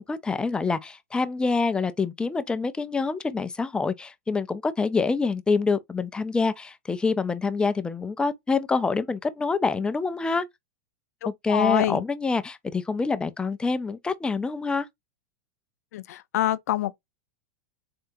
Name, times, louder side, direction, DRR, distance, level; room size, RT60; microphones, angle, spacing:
voice 1, 0.0-10.4 11.3-14.9, left 4 dB, 10° left, 0.4 m, -26 dB
voice 2, 11.2-12.0 15.9-16.9, left 13 dB, 75° left, 0.4 m, -26 dB
3.6 x 3.4 x 2.6 m
hypercardioid pair, 120°, 9 cm